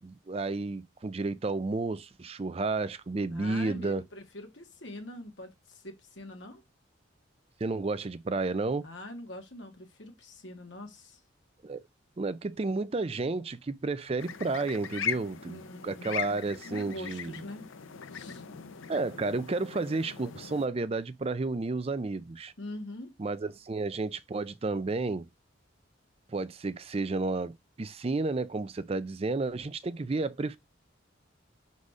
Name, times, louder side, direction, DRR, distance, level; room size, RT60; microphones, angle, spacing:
voice 1, 0.0-4.0 7.6-8.9 11.6-11.8 12.2-17.3 18.9-22.5 23.2-25.3 26.3-30.6, right 3 dB, 30° right, 0.4 m, -32 dB
voice 2, 3.3-6.6 8.8-11.2 15.4-16.2 16.6-17.6 18.1-18.4 22.6-23.1, left 1 dB, 65° left, 1.8 m, -44 dB
sound 1, 14.2-20.7, left 7 dB, 80° left, 0.6 m, -39 dB
4.9 x 4.1 x 4.8 m
head